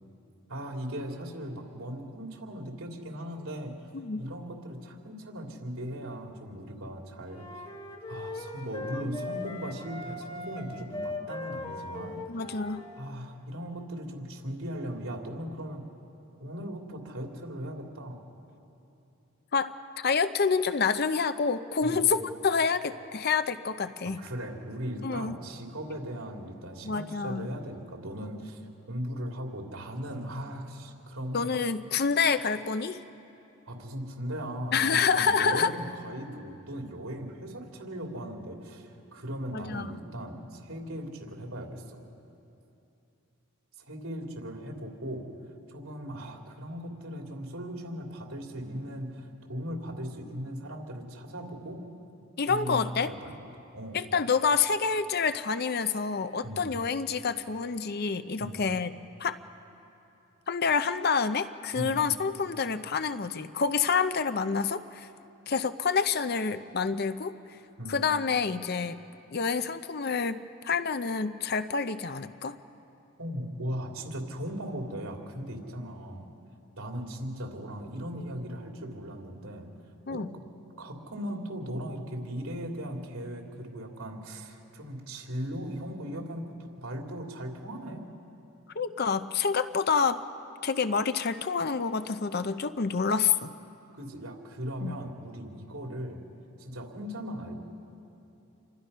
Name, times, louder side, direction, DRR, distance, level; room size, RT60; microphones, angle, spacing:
voice 1, 0.5-3.7 4.2-7.6 8.1-12.2 13.0-15.8 16.4-18.2 21.8-22.0 24.0-28.6 28.9-31.5 33.7-42.0 43.8-45.3 45.7-51.8 52.5-53.3 53.7-54.0 56.4-56.7 58.4-58.6 61.7-62.0 67.8-68.0 73.2-76.3 76.8-79.7 80.1-80.4 80.8-88.0 93.9-96.2 96.6-97.6, equal, 75° right, 1 dB, 3.1 m, -38 dB
sound 1, 7.3-13.1, left 2 dB, 25° left, 1.6 m, -39 dB
voice 2, 12.3-12.8 19.5-24.2 25.0-25.3 26.9-27.5 31.3-33.0 34.7-35.8 39.5-40.0 52.4-53.1 53.9-58.9 59.2-59.4 60.5-65.1 65.5-67.3 67.9-69.0 69.3-72.6 80.1-80.3 88.8-90.2 90.6-93.5 94.8-95.0, left 5 dB, 45° left, 11 dB, 0.6 m, -28 dB
28.0 x 23.0 x 5.6 m, 2.8 s
head